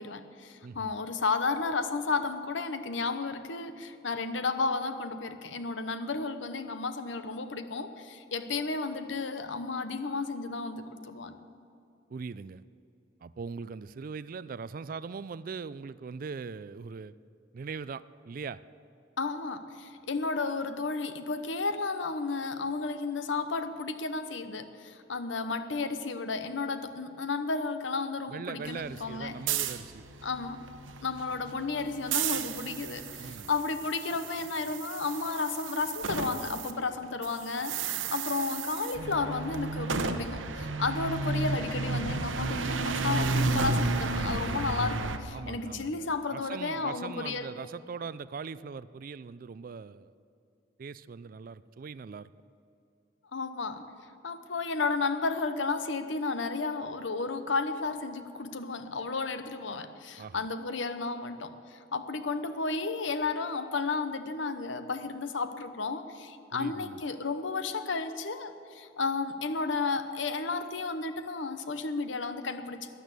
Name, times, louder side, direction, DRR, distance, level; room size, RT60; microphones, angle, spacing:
voice 1, 0.0-11.4 19.2-29.3 30.2-30.6 31.0-47.5 53.3-53.8 54.2-72.9, left 4 dB, 75° left, 10 dB, 0.9 m, -33 dB
voice 2, 12.1-12.6 13.2-17.1 17.5-18.6 28.3-30.0 33.2-33.5 45.3-50.1 50.8-52.3 60.2-60.5 66.5-67.0, right 5 dB, 45° right, 17 dB, 0.3 m, -40 dB
sound 1, 28.6-36.7 37.0-45.2, right 4 dB, 85° right, 0.9 m, -33 dB
12.5 x 10.5 x 8.3 m, 2.5 s
head